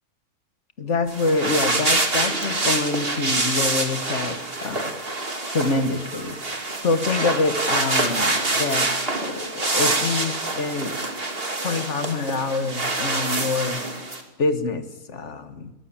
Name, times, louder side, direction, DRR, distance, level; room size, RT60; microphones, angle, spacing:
voice 1, 0.8-5.0 5.5-6.4 6.8-8.9 9.1-11.0 11.6-13.8 14.4-15.7, left 3 dB, 60° left, 9 dB, 2.0 m, -26 dB
sound 1, 1.1-14.2, right 2 dB, 45° right, 2.8 m, -26 dB
22.5 x 16.5 x 8.7 m, 1.0 s
omnidirectional pair, 1.4 m